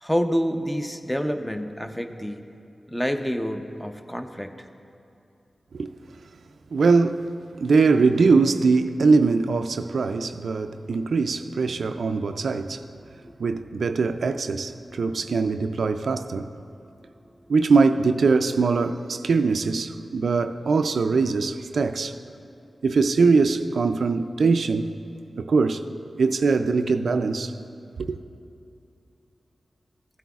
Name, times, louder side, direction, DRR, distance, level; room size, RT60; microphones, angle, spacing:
voice 1, 0.0-2.4 2.9-4.5 13.2-13.3 15.2-15.3 17.1-17.5, equal, 10° left, 6 dB, 0.7 m, -28 dB
voice 2, 6.7-7.3 7.6-12.8 13.4-16.5 17.5-22.2 22.8-24.9 25.4-25.8 26.2-27.5 28.0-28.2, right 4 dB, 80° right, 9 dB, 0.3 m, -22 dB
15.5 x 9.0 x 2.4 m, 2.6 s
cardioid pair, 40°, 0 cm